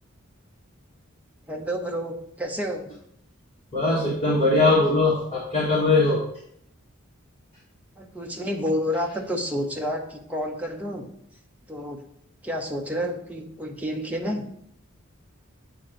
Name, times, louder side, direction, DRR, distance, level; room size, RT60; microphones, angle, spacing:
voice 1, 1.5-2.9 8.0-11.1 11.7-12.0 12.4-14.4, equal, 5° right, 1 dB, 0.7 m, -29 dB
voice 2, 3.7-6.2, left 2 dB, 30° left, -7 dB, 1.5 m, -20 dB
8.6 x 3.0 x 5.0 m, 0.71 s
head